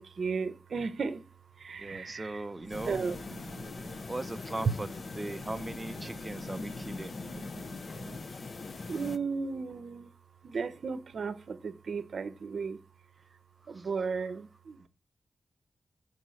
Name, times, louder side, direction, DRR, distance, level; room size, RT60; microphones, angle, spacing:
voice 1, 0.0-4.0 5.1-5.5 6.0-8.2 8.9-10.1 10.4-12.8 13.7-14.9, right 5 dB, 55° right, 0.7 m, -37 dB
voice 2, 1.8-3.0 4.1-4.9 5.2-7.2 13.6-13.9, right 2 dB, 15° right, 0.5 m, -39 dB
sound 1, 2.7-9.2, left 3 dB, 45° left, 0.6 m, -41 dB
6.8 x 4.8 x 6.3 m
wide cardioid pair, 160°, 0 cm